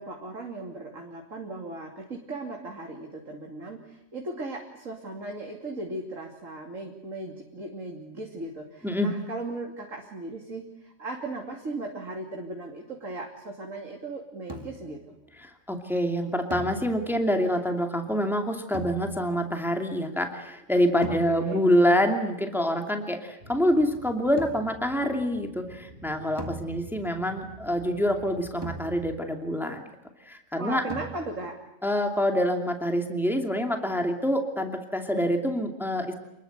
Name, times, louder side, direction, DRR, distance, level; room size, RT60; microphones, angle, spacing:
voice 1, 0.0-15.2 21.1-21.6 30.6-31.6, right 2 dB, 65° right, 1 dB, 3.2 m, -37 dB
sound 1, 14.5-15.0 16.5-17.4 18.7-19.5 21.0-21.7 24.4-24.9 26.4-27.2 28.6-29.4 30.9-31.6, right 2 dB, 15° right, 1.8 m, -40 dB
voice 2, 15.4-29.8 30.2-30.8 31.8-36.1, equal, ahead, 4 dB, 2.6 m, -26 dB
sound 2, 23.4-29.2, right 1 dB, 40° right, 2.8 m, -48 dB
28.0 x 21.5 x 8.2 m, 0.90 s
omnidirectional pair, 1.5 m